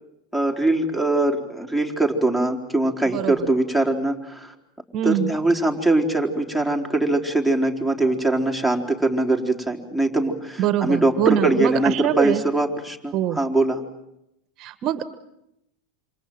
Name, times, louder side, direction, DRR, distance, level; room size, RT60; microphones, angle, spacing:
voice 1, 0.3-4.5 5.0-13.8, right 2 dB, 5° left, 5 dB, 4.0 m, -22 dB
voice 2, 4.9-5.3 10.6-12.4 13.1-13.4 14.6-15.1, right 11 dB, 45° right, 12 dB, 1.4 m, -23 dB
28.0 x 26.0 x 7.8 m, 0.84 s
hypercardioid pair, 100°, 0 cm